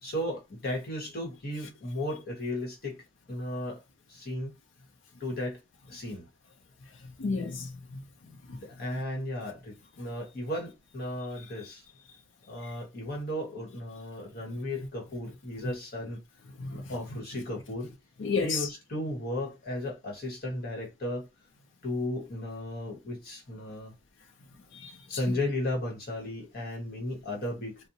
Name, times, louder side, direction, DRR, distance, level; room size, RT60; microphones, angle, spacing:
voice 1, 0.0-3.0 3.3-3.8 4.1-4.6 5.2-5.6 5.9-6.3 8.5-11.8 12.5-16.2 16.7-17.9 18.4-21.3 21.8-23.9 25.1-27.8, left 1 dB, 55° left, 1.2 m, -35 dB
voice 2, 7.2-8.0 8.3-8.6 12.6-12.7 16.6-16.8 18.2-18.7 24.7-25.4, left 4 dB, 75° left, 0.5 m, -33 dB
2.5 x 2.0 x 2.7 m
head